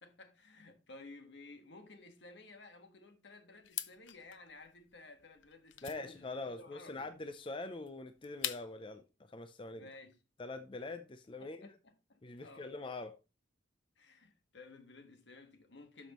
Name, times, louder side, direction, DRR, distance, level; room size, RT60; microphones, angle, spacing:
voice 1, 0.0-7.1 9.7-10.2 11.4-12.7 14.0-16.1, left 3 dB, 70° left, 1.5 m, -55 dB
sound 1, 3.6-8.9, left 12 dB, 85° left, 0.7 m, -45 dB
voice 2, 5.8-9.9 10.4-11.7 12.2-13.2, left 2 dB, 25° left, 0.5 m, -44 dB
12.0 x 6.2 x 3.0 m
head